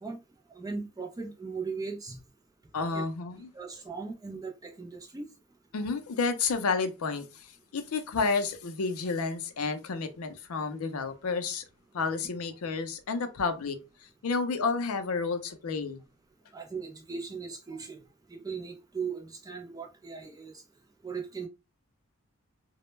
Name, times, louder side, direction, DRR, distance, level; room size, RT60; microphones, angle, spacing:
voice 1, 0.5-2.2 2.9-3.1 3.5-5.3 16.5-18.0 18.3-20.5 21.0-21.5, right 5 dB, 15° right, 0.3 m, -38 dB
voice 2, 2.7-3.5 5.7-11.6 11.9-13.8 14.2-16.0, left 4 dB, 75° left, 0.5 m, -31 dB
2.1 x 2.1 x 3.0 m
head